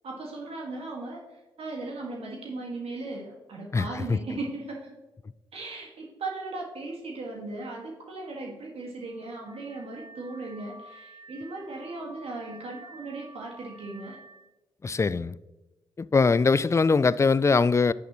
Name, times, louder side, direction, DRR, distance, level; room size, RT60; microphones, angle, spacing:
voice 1, 0.0-5.0 5.5-14.2, right 2 dB, 60° right, 1.8 m, -37 dB
voice 2, 3.7-4.2 14.8-15.4 16.0-17.9, left 4 dB, 25° left, 0.4 m, -22 dB
Car / Alarm, 9.0-14.5, right 2 dB, 40° right, 0.9 m, -50 dB
10.5 x 7.0 x 3.1 m
hypercardioid pair, 40°, 12 cm